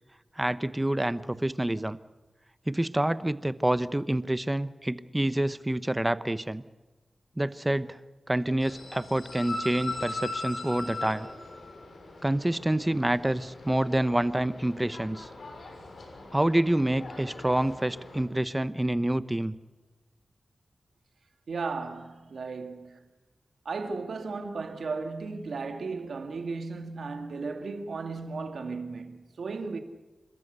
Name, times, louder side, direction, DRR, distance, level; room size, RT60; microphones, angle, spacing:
voice 1, 0.4-2.0 2.7-6.6 7.4-8.0 8.3-11.3 12.2-15.3 16.3-19.5, right 1 dB, 15° right, 0.9 m, -27 dB
sound 1, 8.6-18.2, left 2 dB, 75° left, 6.5 m, -40 dB
voice 2, 21.5-23.0 23.6-29.8, right 4 dB, 85° right, 2.2 m, -35 dB
30.0 x 13.5 x 8.2 m
wide cardioid pair, 70°, 0 cm